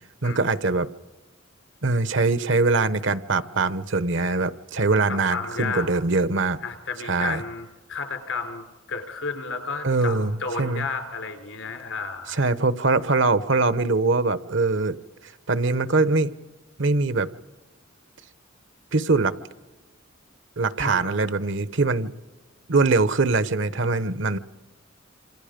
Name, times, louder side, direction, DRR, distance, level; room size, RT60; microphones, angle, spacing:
voice 1, 0.2-0.9 1.8-6.6 7.0-7.4 9.8-10.9 12.3-15.0 15.5-16.3 16.8-17.3 18.9-19.3 20.6-22.1 22.7-24.4, right 3 dB, 65° right, 15 dB, 1.0 m, -22 dB
voice 2, 5.1-5.9 6.6-12.4 20.8-21.3, left 4 dB, 70° left, 6 dB, 3.8 m, -32 dB
27.0 x 27.0 x 5.2 m, 1.2 s
head